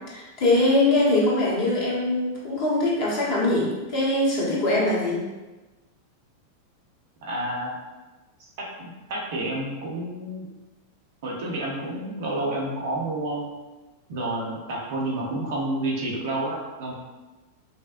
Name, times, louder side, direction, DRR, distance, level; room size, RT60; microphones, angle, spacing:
voice 1, 0.1-5.2, left 2 dB, 45° left, -6 dB, 1.3 m, -22 dB
voice 2, 7.2-7.7 8.8-10.5 11.2-13.5 14.1-16.9, right 1 dB, 50° right, -3 dB, 0.9 m, -29 dB
5.4 x 2.2 x 2.5 m, 1.2 s
figure-of-eight pair, 90°, 0 cm